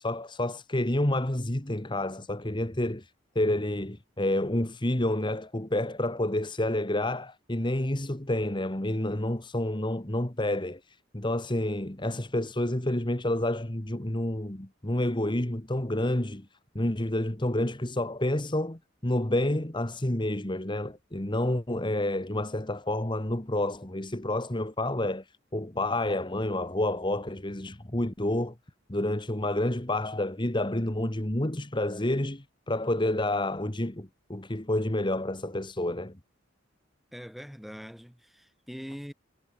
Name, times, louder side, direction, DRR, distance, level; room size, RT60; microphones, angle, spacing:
voice 1, 0.0-3.1 3.3-16.5 16.7-28.5 28.9-36.2, left 1 dB, 25° left, 1.7 m, -29 dB
voice 2, 37.1-39.1, equal, ahead, 5.1 m, -42 dB
head